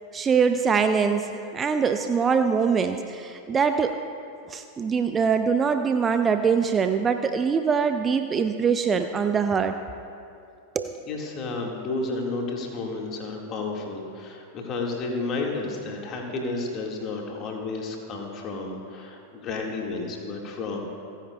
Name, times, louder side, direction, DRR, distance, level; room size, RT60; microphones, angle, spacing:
voice 1, 0.1-4.0 4.5-9.7 10.8-10.9, right 6 dB, 20° right, 8 dB, 0.5 m, -23 dB
voice 2, 11.1-20.8, left 3 dB, 30° left, 0 dB, 2.1 m, -31 dB
29.0 x 9.9 x 2.4 m, 2.5 s
figure-of-eight pair, 90°, 0 cm